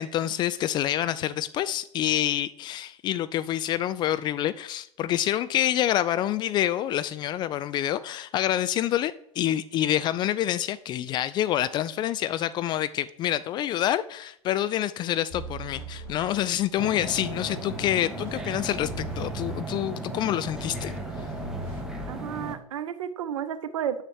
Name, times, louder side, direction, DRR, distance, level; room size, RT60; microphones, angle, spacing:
voice 1, 0.0-20.9 21.2-21.3, left 12 dB, 25° left, 0.3 m, -27 dB
sound 1, 15.3-16.7 17.0-19.9 20.4-22.1, equal, 70° left, 3.9 m, -40 dB
sound 2, 16.8-22.6, right 2 dB, 5° right, 1.3 m, -36 dB
voice 2, 22.1-24.0, right 9 dB, 60° right, 0.8 m, -32 dB
6.8 x 5.7 x 6.4 m
figure-of-eight pair, 90°, 19 cm